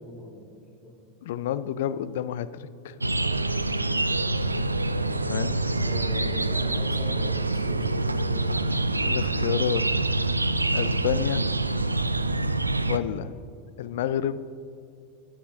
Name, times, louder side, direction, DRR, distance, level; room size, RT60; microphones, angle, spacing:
voice 1, 0.0-1.0 5.8-8.6, equal, 10° left, -6 dB, 1.7 m, -40 dB
voice 2, 1.2-3.0 5.3-5.6 9.0-9.9 10.7-11.5 12.9-13.3 13.8-14.4, left 10 dB, 60° left, 16 dB, 0.3 m, -29 dB
sound 1, 3.0-13.0, right 2 dB, 90° right, 0.3 m, -26 dB
12.5 x 9.9 x 2.5 m, 2.4 s
figure-of-eight pair, 85°, 0 cm